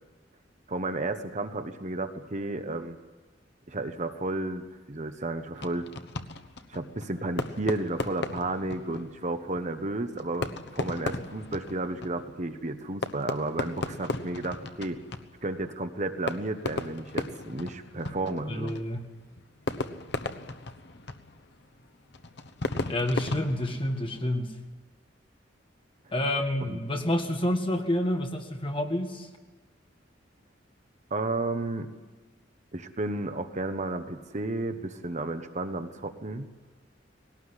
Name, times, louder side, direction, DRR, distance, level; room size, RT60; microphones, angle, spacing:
voice 1, 0.7-3.0 3.7-5.9 6.7-15.0 15.4-18.8 26.7-26.8 31.1-31.9 32.7-36.5, right 2 dB, 40° right, 8 dB, 1.1 m, -32 dB
Fireworks, 5.5-24.4, left 2 dB, 65° left, 1.1 m, -37 dB
voice 2, 18.5-19.0 22.9-24.5 26.1-29.3, left 1 dB, 30° left, 4 dB, 1.9 m, -28 dB
19.5 x 18.0 x 9.9 m, 1.3 s
head